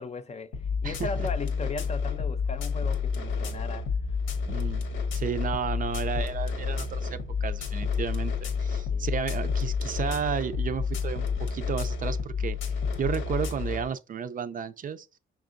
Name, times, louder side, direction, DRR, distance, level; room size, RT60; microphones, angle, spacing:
voice 1, 0.0-3.9 8.7-9.1, left 3 dB, 35° left, 0.5 m, -37 dB
sound 1, 0.5-13.8, left 5 dB, 85° left, 1.0 m, -30 dB
voice 2, 4.5-4.8 5.1-15.1, right 7 dB, 45° right, 0.4 m, -33 dB
5.8 x 3.5 x 2.5 m
cardioid pair, 90°, 20 cm